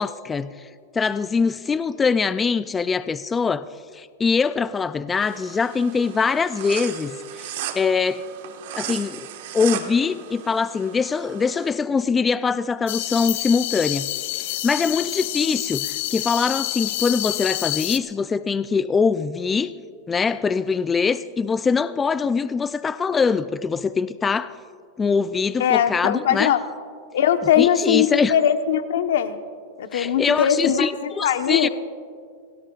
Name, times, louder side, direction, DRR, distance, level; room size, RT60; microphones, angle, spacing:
voice 1, 0.0-3.7 3.9-7.5 7.7-8.2 8.7-9.3 9.5-14.1 14.6-19.7 20.1-24.5 25.0-26.5 27.6-28.3 29.9-31.7, left 5 dB, 15° left, 14 dB, 0.3 m, -23 dB
sound 1, 5.2-11.7, right 10 dB, 65° right, 1.5 m, -36 dB
sound 2, 12.9-18.0, left 16 dB, 60° left, 0.7 m, -28 dB
voice 2, 25.6-26.6 27.1-29.4 29.8-31.7, left 9 dB, 75° left, 8 dB, 1.1 m, -20 dB
27.0 x 18.5 x 2.4 m, 2.2 s
supercardioid pair, 150°, 0 cm